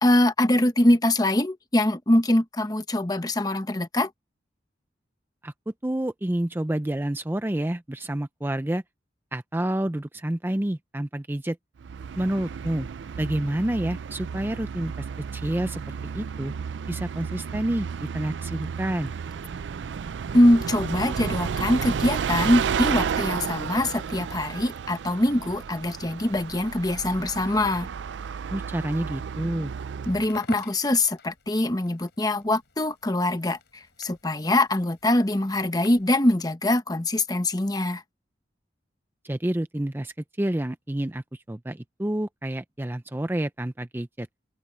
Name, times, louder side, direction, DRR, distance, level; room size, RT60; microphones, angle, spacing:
voice 1, 0.0-4.1 20.3-27.9 30.1-33.6 34.0-38.0, left 1 dB, 20° left, 1.0 m, -23 dB
voice 2, 5.4-8.8 9.3-11.6 12.2-12.9 13.2-15.1 15.3-16.5 16.9-17.9 18.1-19.1 28.5-29.7 39.2-44.3, right 1 dB, 10° right, 0.5 m, -29 dB
Bus, 11.8-30.4, right 6 dB, 75° right, 0.4 m, -32 dB
Crackle, 30.1-36.2, left 3 dB, 65° left, 4.3 m, -49 dB
head